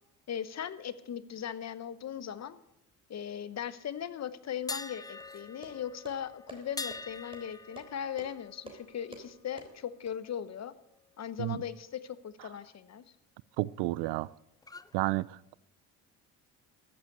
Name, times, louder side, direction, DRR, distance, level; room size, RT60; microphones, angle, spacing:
voice 1, 0.3-2.6 3.1-10.7 11.2-13.0, left 9 dB, 40° left, 1.0 m, -38 dB
sound 1, 4.7-10.6 10.9-11.1 14.6-15.0, left 3 dB, 10° left, 0.4 m, -45 dB
sound 2, 5.2-10.1, right 2 dB, 15° right, 3.5 m, -51 dB
voice 2, 13.6-14.3 14.9-15.5, right 19 dB, 80° right, 0.5 m, -31 dB
14.0 x 8.3 x 8.6 m
supercardioid pair, 90°, 39 cm